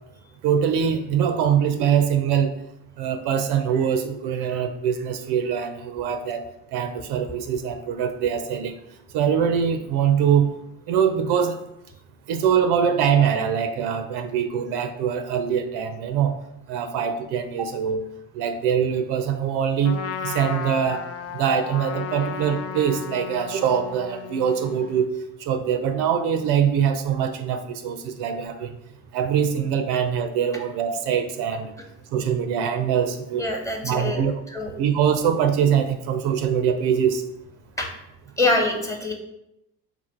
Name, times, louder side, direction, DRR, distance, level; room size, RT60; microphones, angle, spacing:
voice 1, 0.4-2.6 3.0-6.5 6.7-8.8 9.1-10.5 10.9-11.6 12.3-16.4 16.7-18.0 18.3-20.0 20.2-21.0 21.3-25.1 25.4-28.7 29.1-31.7 32.1-33.5 33.8-34.3 34.8-37.2, right 8 dB, 60° right, 8 dB, 0.5 m, -23 dB
Trumpet, 19.8-25.1, left 7 dB, 35° left, 0.4 m, -34 dB
voice 2, 33.3-34.2 34.5-34.7 37.8-37.9 38.4-39.1, left 2 dB, 5° left, 2 dB, 0.9 m, -24 dB
3.5 x 2.5 x 4.4 m, 0.83 s
hypercardioid pair, 70°, 44 cm